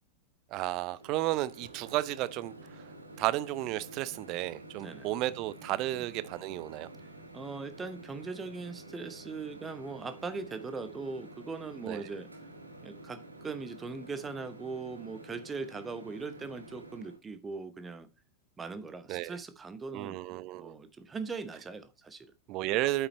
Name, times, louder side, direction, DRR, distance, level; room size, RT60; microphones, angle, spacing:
voice 1, 0.5-2.8 3.2-6.9 11.9-12.0 19.1-19.4 19.9-20.7 22.5-23.1, right 16 dB, 40° right, 0.5 m, -33 dB
Microwave oven, 0.9-17.2, right 2 dB, 80° right, 1.4 m, -50 dB
voice 2, 7.3-12.3 12.8-18.1 18.6-20.2 20.6-22.3, right 4 dB, 15° right, 0.9 m, -40 dB
8.4 x 5.7 x 4.1 m
figure-of-eight pair, 90°, 0 cm